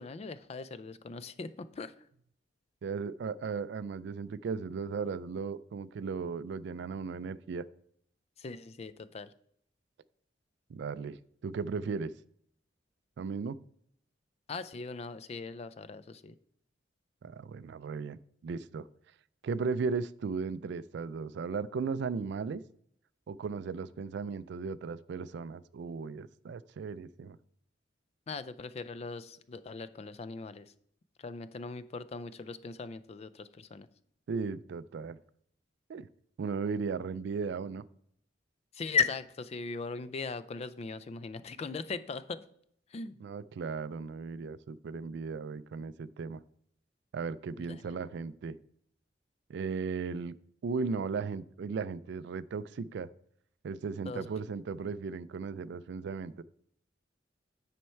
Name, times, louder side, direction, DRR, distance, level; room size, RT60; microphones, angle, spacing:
voice 1, 0.0-2.0 8.4-9.3 14.5-16.4 28.3-30.7 31.2-33.9 38.7-42.4 42.9-43.2 47.6-47.9 54.1-54.3, left 5 dB, 35° left, 14 dB, 0.4 m, -38 dB
voice 2, 2.8-7.6 10.7-12.1 13.2-13.6 17.2-18.9 19.4-22.6 23.3-27.4 34.3-35.2 35.9-36.1 36.4-37.8 43.2-46.4 47.1-48.6 49.5-50.3 50.6-53.1 53.6-56.4, right 5 dB, 65° right, 17 dB, 0.3 m, -36 dB
9.4 x 4.3 x 4.5 m, 0.68 s
head